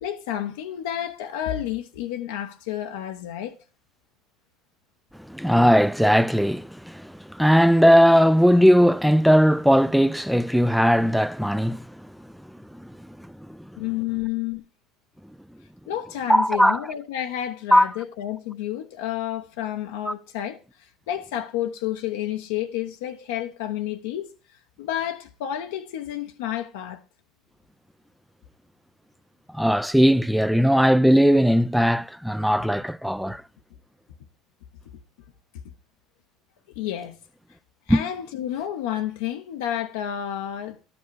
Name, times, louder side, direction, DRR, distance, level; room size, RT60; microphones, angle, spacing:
voice 1, 0.0-3.6 13.8-14.6 15.9-20.6 21.1-24.3 24.8-27.0 36.8-37.2 37.9-40.8, left 11 dB, 75° left, 0.8 m, -30 dB
voice 2, 5.2-12.0 12.7-13.6 16.3-16.8 17.7-17.9 20.1-20.2 29.5-33.4 37.9-38.1, equal, ahead, 0.4 m, -19 dB
12.0 x 6.1 x 4.6 m
hypercardioid pair, 70°, 0 cm